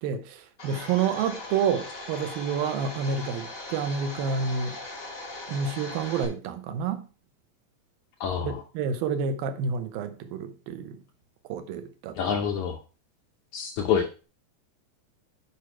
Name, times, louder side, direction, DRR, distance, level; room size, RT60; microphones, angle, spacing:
voice 1, 0.0-4.8 5.5-7.0 8.4-11.0 11.4-12.2, right 6 dB, 80° right, 2.6 m, -29 dB
Domestic sounds home sounds, 0.6-6.3, left 2 dB, 25° left, 2.1 m, -39 dB
voice 2, 8.2-8.6 12.2-12.8 13.5-14.2, left 7 dB, 75° left, 1.7 m, -27 dB
10.0 x 5.0 x 4.5 m
omnidirectional pair, 4.2 m